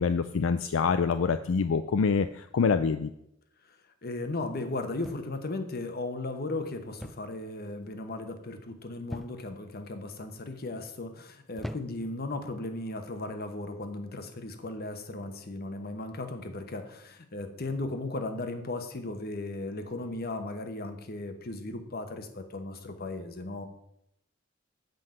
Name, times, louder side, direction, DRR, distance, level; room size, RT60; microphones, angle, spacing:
voice 1, 0.0-3.1, left 5 dB, 75° left, 10 dB, 0.4 m, -26 dB
voice 2, 4.0-23.7, left 2 dB, 50° left, 7 dB, 1.1 m, -36 dB
sound 1, 5.0-5.6 7.0-7.4 7.7-8.1 9.1-9.6 10.4-10.7 11.6-12.2 13.2-13.4, equal, ahead, 0.4 m, -42 dB
7.8 x 5.4 x 7.7 m, 0.78 s
head